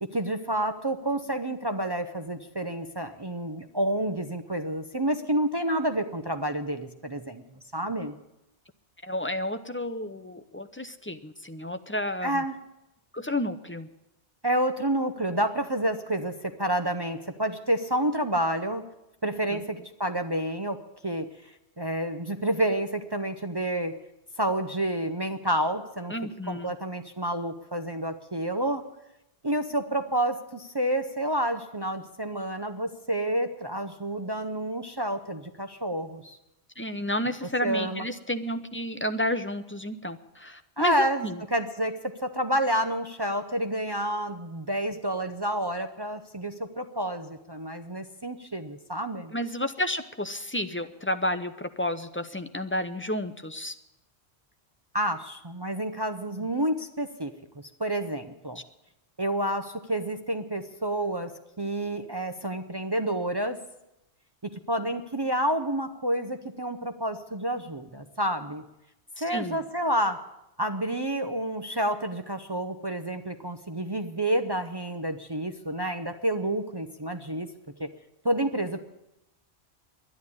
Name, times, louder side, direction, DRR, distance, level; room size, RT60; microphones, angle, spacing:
voice 1, 0.0-7.4 7.7-8.1 12.2-12.5 14.4-18.9 19.2-21.3 21.8-24.0 24.4-26.1 26.5-28.8 29.4-36.4 37.6-38.1 40.8-49.3 54.9-58.6 59.2-63.6 64.4-68.6 69.2-70.2 70.6-77.5 77.8-77.9 78.2-78.8, right 1 dB, 25° right, 6 dB, 0.6 m, -29 dB
voice 2, 9.0-12.4 13.1-13.9 19.5-19.6 26.1-26.7 36.8-41.4 49.3-53.7 69.2-69.6, left 1 dB, 15° left, 9 dB, 0.5 m, -31 dB
11.0 x 11.0 x 9.7 m, 0.91 s
omnidirectional pair, 1.1 m